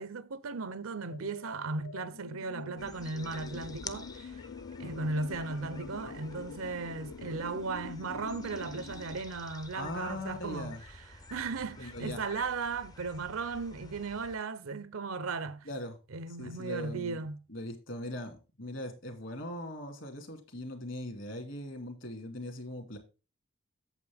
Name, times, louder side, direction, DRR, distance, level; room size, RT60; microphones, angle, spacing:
voice 1, 0.0-4.4 4.8-10.7 11.3-15.7 16.1-17.4, right 4 dB, 80° right, 0.7 m, -36 dB
sound 1, 1.1-9.2, left 5 dB, 85° left, 0.5 m, -46 dB
sound 2, 2.8-14.4, left 3 dB, 20° left, 0.5 m, -50 dB
voice 2, 9.7-10.8 11.8-12.2 15.7-16.0 16.4-17.2 17.5-23.0, left 1 dB, 60° left, 2.3 m, -40 dB
8.4 x 7.5 x 3.4 m
head